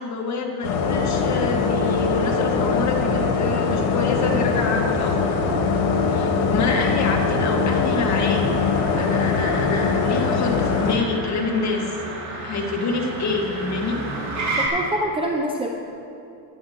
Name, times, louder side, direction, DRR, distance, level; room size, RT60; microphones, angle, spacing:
voice 1, 0.0-5.2 5.4-5.6 6.1-8.5 9.0-11.9 12.4-14.0, left 4 dB, 35° left, 0 dB, 1.7 m, -27 dB
sound 1, 0.6-11.0, left 4 dB, 80° left, 1.5 m, -22 dB
Motor vehicle (road), 1.6-14.7, right 2 dB, 35° right, 2.6 m, -35 dB
voice 2, 14.4-15.7, right 1 dB, 10° right, 1 dB, 0.5 m, -26 dB
15.0 x 10.5 x 2.9 m, 2.7 s
supercardioid pair, 120°, 47 cm